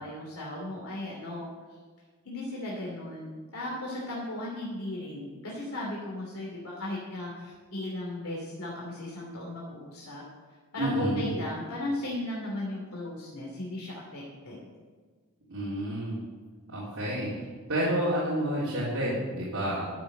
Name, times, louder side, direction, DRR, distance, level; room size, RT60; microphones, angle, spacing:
voice 1, 0.0-1.5 2.2-10.2 10.7-14.7, left 1 dB, 75° left, -4 dB, 2.8 m, -36 dB
voice 2, 10.8-11.3 15.5-16.2 16.7-19.9, right 1 dB, 60° right, -9 dB, 3.7 m, -30 dB
12.5 x 7.0 x 7.9 m, 1.5 s
head